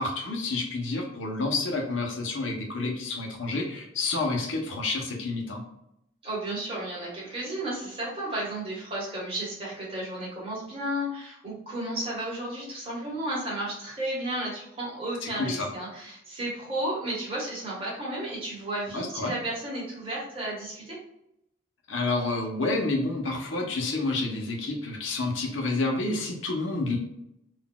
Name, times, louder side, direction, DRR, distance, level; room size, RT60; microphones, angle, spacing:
voice 1, 0.0-5.6 15.2-15.7 18.9-19.3 21.9-27.0, left 3 dB, 85° left, 1 dB, 0.8 m, -29 dB
voice 2, 6.2-21.0, right 1 dB, 30° right, -5 dB, 1.4 m, -33 dB
3.9 x 2.6 x 2.2 m, 0.81 s
head